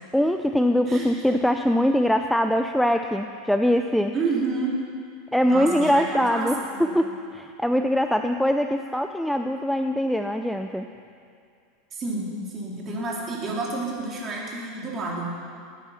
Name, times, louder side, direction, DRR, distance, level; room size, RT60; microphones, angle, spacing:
voice 1, 0.1-4.1 5.3-6.5 6.8-10.9, equal, ahead, 6 dB, 0.4 m, -22 dB
voice 2, 0.9-1.3 4.1-4.8 5.4-6.9 11.9-15.3, right 3 dB, 30° right, -3 dB, 3.6 m, -30 dB
18.5 x 9.9 x 5.7 m, 2.3 s
supercardioid pair, 135°, 0 cm